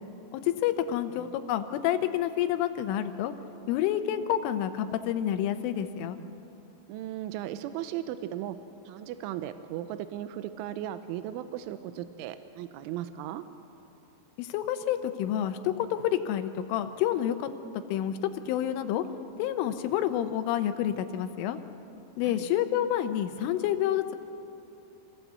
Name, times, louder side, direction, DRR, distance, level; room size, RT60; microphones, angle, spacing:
voice 1, 0.3-3.3 3.7-6.2 14.4-17.5 17.9-18.2 18.5-19.0 19.4-21.6 22.2-24.2, left 11 dB, 90° left, 9 dB, 3.4 m, -28 dB
voice 2, 6.9-8.6 8.9-13.4 22.2-22.5, right 12 dB, 85° right, 11 dB, 3.1 m, -36 dB
27.0 x 16.5 x 8.1 m, 2.8 s
omnidirectional pair, 5.6 m